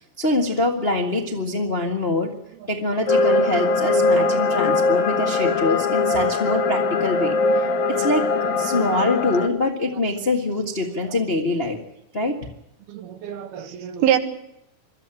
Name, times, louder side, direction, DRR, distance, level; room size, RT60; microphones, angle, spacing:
voice 1, 0.2-2.3 2.7-8.3 8.6-11.8 12.1-12.4, left 2 dB, 45° left, 1 dB, 0.7 m, -24 dB
sound 1, 3.1-9.5, left 3 dB, 60° left, 2.3 m, -21 dB
voice 2, 12.9-14.2, right 11 dB, 90° right, 7 dB, 3.5 m, -24 dB
23.0 x 13.5 x 9.0 m, 0.81 s
omnidirectional pair, 4.3 m